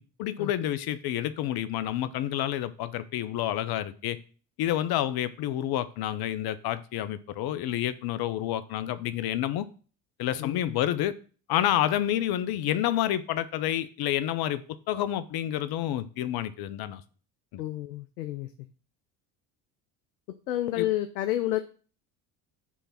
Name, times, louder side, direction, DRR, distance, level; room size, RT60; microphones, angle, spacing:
voice 1, 0.2-4.2 4.6-9.7 10.2-11.1 11.5-17.0 17.5-17.6 20.8-20.9, left 12 dB, 50° left, 14 dB, 0.7 m, -29 dB
voice 2, 10.4-10.8 17.6-18.7 20.5-21.6, left 14 dB, 90° left, 9 dB, 0.6 m, -30 dB
6.3 x 3.4 x 5.7 m, 0.39 s
hypercardioid pair, 65°, 47 cm